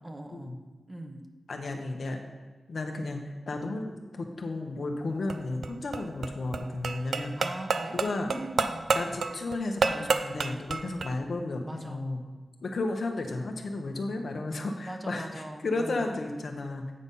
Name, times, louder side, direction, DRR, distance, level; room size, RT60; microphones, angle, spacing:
voice 1, 0.0-0.6 0.9-1.3 7.4-8.9 11.7-12.0 14.8-16.1, right 1 dB, 25° right, 4 dB, 1.0 m, -41 dB
voice 2, 1.5-2.2 2.7-7.3 7.9-8.3 8.9-12.2 12.6-16.9, left 2 dB, 70° left, 3 dB, 1.0 m, -33 dB
sound 1, 5.1-11.1, right 4 dB, 80° right, 0.5 m, -30 dB
8.7 x 4.1 x 5.5 m, 1.3 s
cardioid pair, 50°, 0 cm